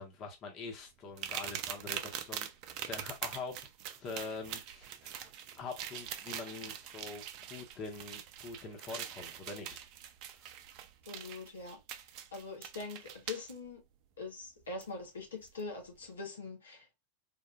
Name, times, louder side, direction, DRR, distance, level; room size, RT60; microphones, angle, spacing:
voice 1, 0.0-2.5 2.9-3.6 4.0-5.3 5.6-9.8, left 4 dB, 40° left, 1.1 m, -44 dB
sound 1, 1.2-13.5 14.8-14.9 15.5-15.6, right 10 dB, 50° right, 0.5 m, -43 dB
voice 2, 11.1-11.8 12.3-13.8 14.2-17.1, left 3 dB, 80° left, 1.2 m, -43 dB
3.8 x 2.6 x 2.3 m
hypercardioid pair, 95°, 0 cm